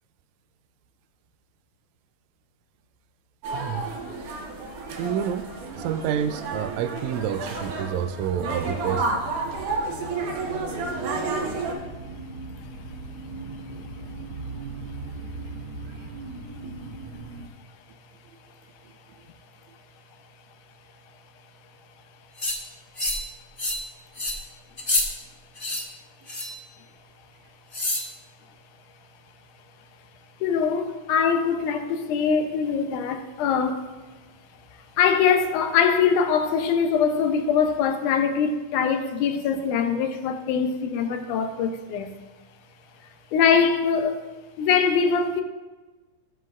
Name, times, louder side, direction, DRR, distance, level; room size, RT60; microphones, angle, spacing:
sound 1, 3.4-11.7, right 3 dB, 70° right, 2.6 m, -31 dB
voice 1, 3.5-3.9 5.0-9.1 16.6-16.7, right 9 dB, 90° right, 1.6 m, -29 dB
sound 2, 8.1-17.5, right 2 dB, 45° right, 1.9 m, -39 dB
sound 3, 22.4-22.6 23.0-23.3 23.6-23.8 24.1-24.4 24.8-25.0 25.6-25.8 26.3-26.6 27.7-28.1, left 1 dB, 40° left, 0.7 m, -27 dB
voice 2, 30.4-33.9 34.7-42.2 43.3-44.2 44.6-45.4, left 6 dB, 75° left, 2.0 m, -23 dB
17.0 x 7.5 x 2.5 m
omnidirectional pair, 3.9 m